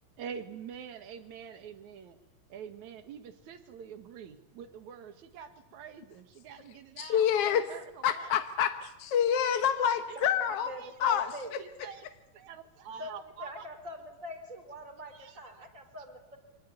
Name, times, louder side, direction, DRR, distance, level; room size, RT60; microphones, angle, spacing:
voice 1, 0.2-2.2 2.5-7.3 7.5-8.3 10.1-10.2 10.8-10.9 11.6-12.1 12.3-13.7 15.1-15.7, right 7 dB, 65° right, 9 dB, 2.8 m, -46 dB
voice 2, 7.0-7.7 8.0-10.7 11.0-11.6, left 8 dB, 65° left, 8 dB, 1.5 m, -27 dB
voice 3, 10.5-11.5 13.0-13.1 13.4-16.4, equal, 20° right, 6 dB, 3.9 m, -43 dB
25.0 x 19.0 x 9.6 m, 0.91 s
omnidirectional pair, 3.9 m